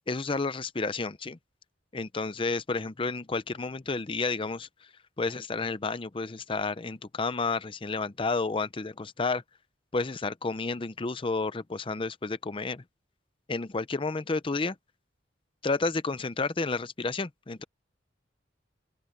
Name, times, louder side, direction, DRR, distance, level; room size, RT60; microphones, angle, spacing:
voice 1, 0.1-1.4 1.9-4.7 5.2-9.4 9.9-12.8 13.5-14.7 15.6-17.6, left 3 dB, 30° left, 0.6 m, -31 dB
open air
head